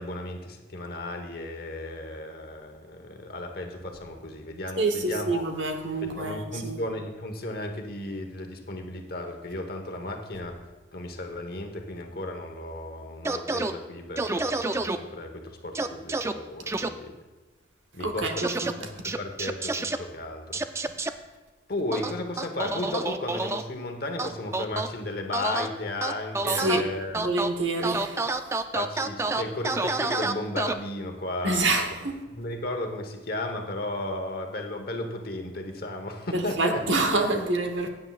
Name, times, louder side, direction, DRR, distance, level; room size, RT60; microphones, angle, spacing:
voice 1, 0.0-5.4 6.0-10.6 10.9-17.1 17.9-20.6 21.7-27.3 28.7-31.8 32.3-36.8, left 2 dB, 55° left, 4 dB, 1.1 m, -34 dB
voice 2, 4.8-6.8 18.0-18.7 26.5-26.8 27.1-28.3 31.4-32.2 36.3-37.9, right 2 dB, 80° right, 5 dB, 1.1 m, -27 dB
sound 1, 13.2-13.7 14.2-15.0 15.7-16.3 16.7-16.9 18.4-18.7 19.0-20.0 20.5-21.1 21.9-23.6 24.2-24.9 25.3-25.7 26.0-26.8 27.1-27.5 27.8-30.7, right 3 dB, 15° right, 0.3 m, -28 dB
15.5 x 8.8 x 2.4 m, 1.2 s
head